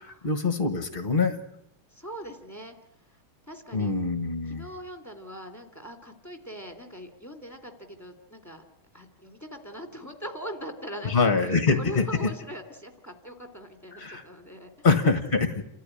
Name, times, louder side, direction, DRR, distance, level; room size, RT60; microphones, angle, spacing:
voice 1, 0.0-1.4 3.7-4.7 11.0-12.0 13.9-14.2 14.8-15.5, left 4 dB, 30° left, 8 dB, 1.4 m, -24 dB
voice 2, 1.9-3.9 4.5-8.6 8.9-14.7, equal, 10° left, 6 dB, 2.7 m, -41 dB
29.5 x 14.0 x 10.0 m, 0.79 s
omnidirectional pair, 2.3 m